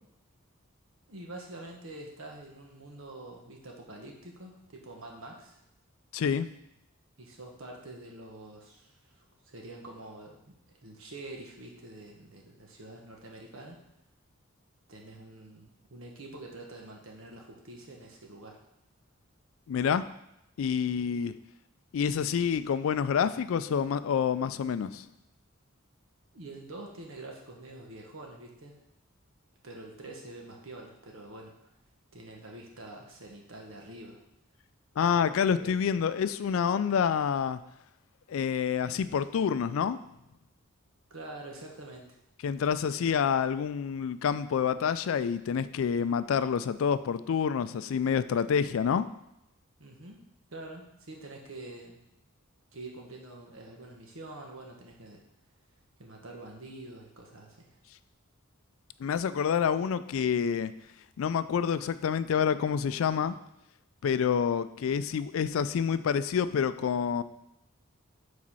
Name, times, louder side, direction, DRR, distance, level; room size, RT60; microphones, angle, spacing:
voice 1, 1.1-5.6 7.2-13.8 14.9-18.6 26.3-28.8 29.6-31.7 32.1-34.2 35.0-35.7 41.1-42.1 49.8-50.3 50.5-52.0 52.7-55.2 56.0-57.8, right 2 dB, 75° right, 0 dB, 1.2 m, -46 dB
voice 2, 6.1-6.5 19.7-20.0 20.6-21.3 21.9-25.0 35.0-37.6 38.3-40.0 42.4-49.1 59.0-60.7 61.2-63.4 64.0-67.2, left 7 dB, 75° left, 13 dB, 0.3 m, -28 dB
5.1 x 4.1 x 5.5 m, 0.85 s
head